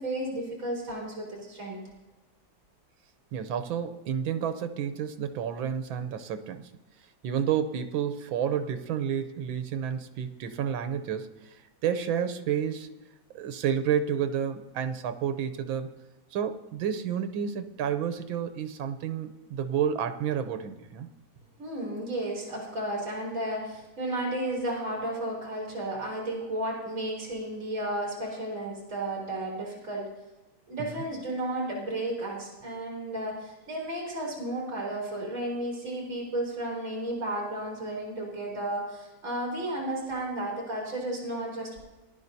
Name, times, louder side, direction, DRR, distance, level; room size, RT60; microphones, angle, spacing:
voice 1, 0.0-1.8 21.6-30.1 30.7-41.8, right 1 dB, 40° right, -3 dB, 3.9 m, -33 dB
voice 2, 3.3-6.7 7.2-11.3 11.8-12.9 13.3-15.9 16.3-21.1 30.9-31.0, right 8 dB, 85° right, 10 dB, 1.6 m, -30 dB
18.5 x 11.0 x 2.7 m, 1.1 s
omnidirectional pair, 2.1 m